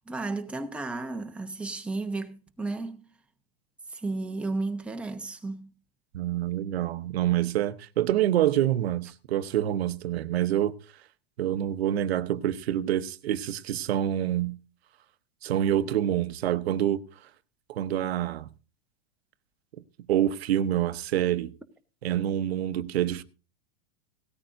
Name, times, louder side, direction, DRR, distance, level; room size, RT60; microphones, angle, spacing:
voice 1, 0.1-3.1 3.9-5.7, right 3 dB, 5° right, 0.9 m, -33 dB
voice 2, 6.1-10.7 11.4-14.6 15.4-17.0 17.7-18.5 20.1-21.5 22.0-23.2, right 11 dB, 85° right, 0.9 m, -26 dB
17.5 x 13.5 x 2.6 m
supercardioid pair, 150°, 30 cm